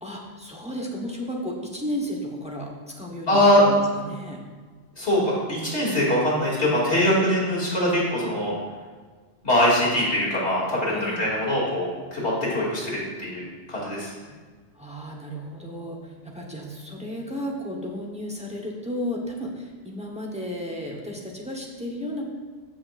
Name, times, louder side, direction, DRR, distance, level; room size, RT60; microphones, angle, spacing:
voice 1, 0.0-4.4 10.9-11.3 14.7-22.3, equal, 5° right, -2 dB, 1.0 m, -33 dB
voice 2, 3.3-3.6 5.0-8.5 9.4-13.4 13.7-14.1, left 1 dB, 90° left, -6 dB, 3.0 m, -22 dB
14.0 x 5.8 x 2.5 m, 1.5 s
omnidirectional pair, 1.1 m